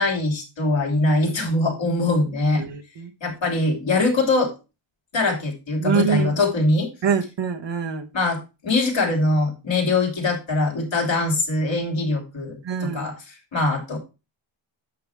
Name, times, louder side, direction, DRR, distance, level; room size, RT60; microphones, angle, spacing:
voice 1, 0.0-2.6 3.2-4.5 5.1-6.9 8.1-14.0, left 2 dB, 65° left, 2 dB, 2.9 m, -22 dB
voice 2, 2.6-3.1 5.8-6.3 7.0-8.1 12.6-13.1, right 6 dB, 60° right, 5 dB, 1.3 m, -24 dB
9.0 x 6.0 x 3.5 m, 0.28 s
wide cardioid pair, 110°, 49 cm